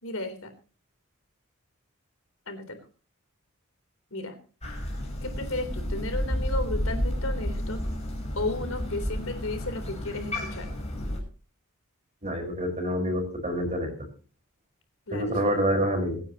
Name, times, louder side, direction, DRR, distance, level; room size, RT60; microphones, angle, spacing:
voice 1, 0.0-0.5 2.5-2.8 4.1-4.4 5.2-7.8 8.4-10.7 15.1-15.6, left 2 dB, 75° left, 7 dB, 3.6 m, -34 dB
Crow, 4.6-11.2, left 1 dB, 30° left, 6.7 m, -31 dB
voice 2, 12.2-13.9 15.1-16.2, equal, 35° right, 5 dB, 5.0 m, -27 dB
26.0 x 9.9 x 3.0 m, 0.37 s
head